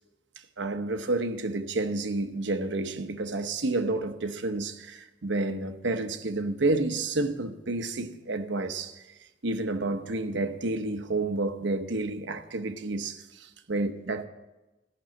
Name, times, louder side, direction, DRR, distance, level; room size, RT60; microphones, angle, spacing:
voice 1, 0.6-9.0 9.4-14.3, right 2 dB, 75° right, 0.9 m, -30 dB
13.5 x 6.2 x 8.7 m
head